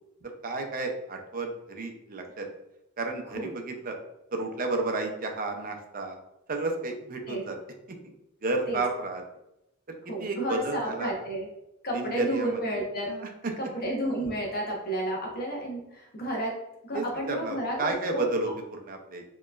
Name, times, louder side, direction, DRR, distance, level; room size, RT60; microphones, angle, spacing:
voice 1, 0.4-2.5 3.0-4.0 4.3-6.2 6.5-7.6 7.9-8.0 8.4-9.2 10.0-11.1 11.9-12.6 13.1-13.5 16.9-19.2, right 2 dB, 40° right, 4 dB, 0.6 m, -32 dB
voice 2, 10.1-11.5 11.8-13.1 13.6-16.5 16.8-18.3, right 1 dB, 45° left, -1 dB, 1.0 m, -31 dB
4.5 x 3.0 x 2.4 m, 0.87 s
head